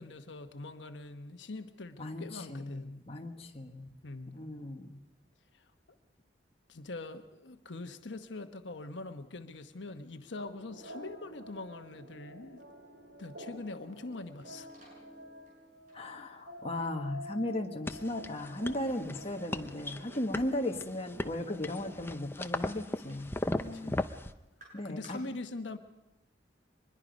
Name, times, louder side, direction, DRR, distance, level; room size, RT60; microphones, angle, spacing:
voice 1, 0.0-3.0 4.0-4.4 5.5-5.7 6.7-12.6 13.2-14.7 23.6-24.0 24.8-25.8, left 2 dB, 80° left, 7 dB, 1.1 m, -43 dB
voice 2, 2.0-3.9 4.3-5.0 15.9-24.0 24.7-25.2, left 1 dB, 35° left, 3 dB, 1.4 m, -37 dB
sound 1, 10.4-22.2, equal, 80° right, 3.0 m, -50 dB
sound 2, 13.7-25.1, right 1 dB, 45° right, 7.7 m, -63 dB
sound 3, 17.9-24.3, left 1 dB, 15° left, 0.6 m, -37 dB
23.5 x 21.0 x 5.3 m, 0.96 s
head